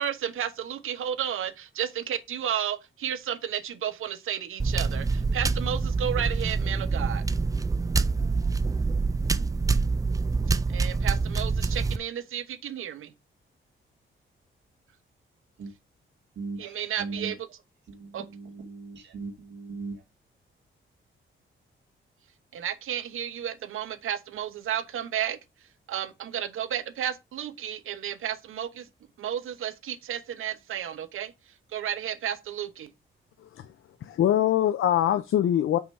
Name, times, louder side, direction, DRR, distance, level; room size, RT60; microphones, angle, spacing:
voice 1, 0.0-7.2 10.7-13.1 16.6-17.6 18.1-18.3 22.5-25.4 25.9-28.9 29.2-31.3 31.7-32.9, right 9 dB, 85° right, 1.0 m, -32 dB
sound 1, 4.6-12.0, right 4 dB, 15° right, 0.3 m, -26 dB
voice 2, 16.4-17.3 18.0-20.0, right 4 dB, 60° right, 2.0 m, -38 dB
voice 3, 33.4-33.7 34.0-35.8, left 11 dB, 90° left, 0.7 m, -23 dB
6.0 x 5.3 x 4.7 m
wide cardioid pair, 165°, 21 cm